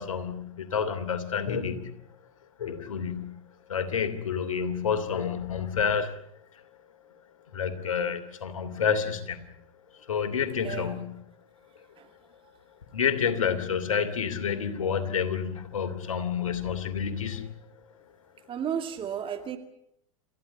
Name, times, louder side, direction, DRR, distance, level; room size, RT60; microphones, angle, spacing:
voice 1, 0.0-1.9 2.6-3.4 3.7-6.1 7.5-9.4 9.9-11.2 12.9-17.4, left 7 dB, 75° left, 10 dB, 2.9 m, -29 dB
voice 2, 10.6-11.0 12.0-12.1 18.5-19.6, right 8 dB, 30° right, 7 dB, 2.2 m, -33 dB
28.5 x 14.5 x 9.7 m, 0.75 s
figure-of-eight pair, 90°, 17 cm